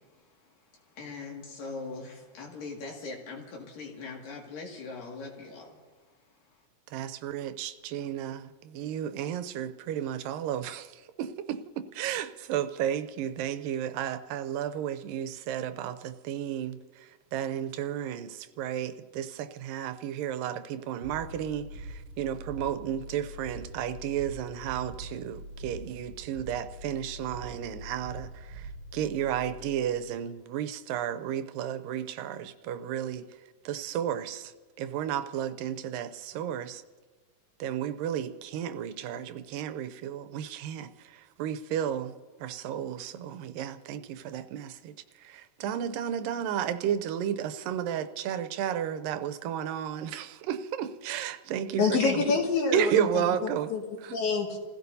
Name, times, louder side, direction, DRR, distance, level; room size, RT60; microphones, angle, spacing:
voice 1, 0.0-6.6, left 3 dB, 80° left, 3.8 m, -42 dB
voice 2, 6.9-11.6 11.9-33.3 33.7-34.5 34.8-36.8 37.6-42.2 42.4-52.2 52.7-53.7 54.0-54.2, right 10 dB, 85° right, 2.3 m, -33 dB
sound 1, 21.0-30.1, right 1 dB, 45° right, 2.1 m, -44 dB
voice 3, 51.8-54.6, left 4 dB, 60° left, 3.2 m, -27 dB
29.5 x 16.0 x 2.7 m
omnidirectional pair, 3.9 m